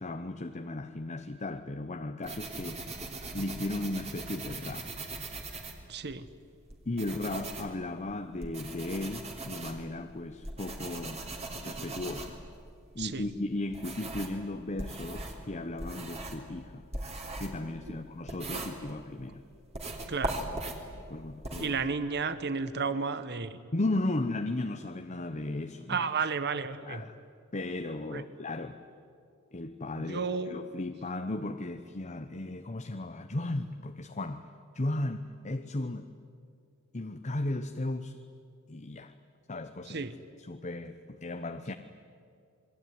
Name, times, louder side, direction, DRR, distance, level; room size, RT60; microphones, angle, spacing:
voice 1, 0.0-2.9 3.3-4.9 6.8-11.2 11.6-12.4 12.9-16.8 17.4-19.4 21.1-21.7 23.7-26.1 26.8-27.2 27.5-28.8 29.5-34.5 34.7-36.1 36.9-38.2 38.7-39.1 39.5-40.1 40.4-41.7, left 2 dB, 35° left, 7 dB, 0.9 m, -35 dB
sound 1, 2.2-6.2 6.7-14.4 14.8-19.3 19.7-21.7, right 2 dB, 30° right, 3.4 m, -40 dB
voice 2, 5.9-6.3 13.0-13.3 20.1-20.4 21.6-23.6 25.9-27.0 28.1-28.2 30.0-30.7 39.9-40.1, right 5 dB, 50° right, 12 dB, 1.2 m, -32 dB
27.5 x 22.0 x 9.5 m, 2.4 s
head